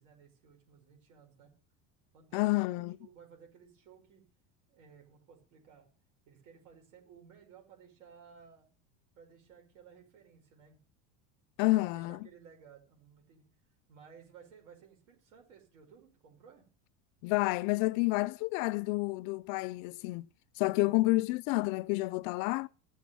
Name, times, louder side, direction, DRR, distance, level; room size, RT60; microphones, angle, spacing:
voice 1, 0.0-1.5 2.1-4.2 4.7-5.9 6.3-8.7 9.2-10.8 11.9-13.4 13.9-16.7 20.8-21.2, right 7 dB, 85° right, 5.6 m, -57 dB
voice 2, 2.3-3.0 11.6-12.2 17.2-20.3 20.6-22.7, left 22 dB, 60° left, 0.5 m, -29 dB
15.5 x 7.3 x 6.9 m
cardioid pair, 140°, 37 cm